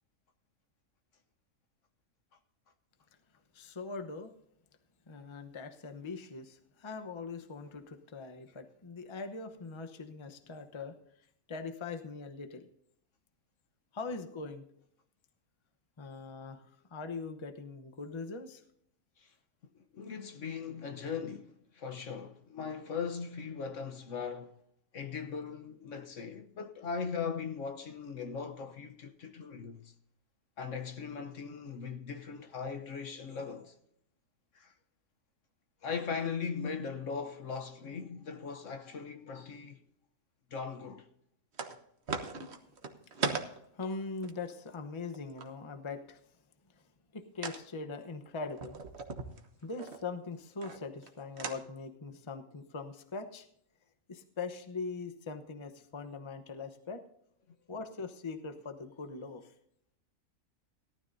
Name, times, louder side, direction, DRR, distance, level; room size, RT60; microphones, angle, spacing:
voice 1, 3.5-4.3 5.1-10.9 11.5-12.7 13.9-14.7 16.0-16.6 16.9-18.6 43.3-46.2 47.1-48.8 49.6-53.5 54.1-57.0 57.7-59.5, left 4 dB, 25° left, 0.8 m, -41 dB
voice 2, 19.7-24.6 24.9-29.9 30.6-33.8 34.5-34.7 35.8-39.8 40.5-41.1, left 6 dB, 60° left, 1.2 m, -39 dB
sound 1, 41.5-41.8 42.1-45.5 47.4-47.6 48.5-50.0 50.6-51.1 51.4-51.6, right 4 dB, 50° right, 1.3 m, -38 dB
18.0 x 12.5 x 2.7 m
omnidirectional pair, 1.6 m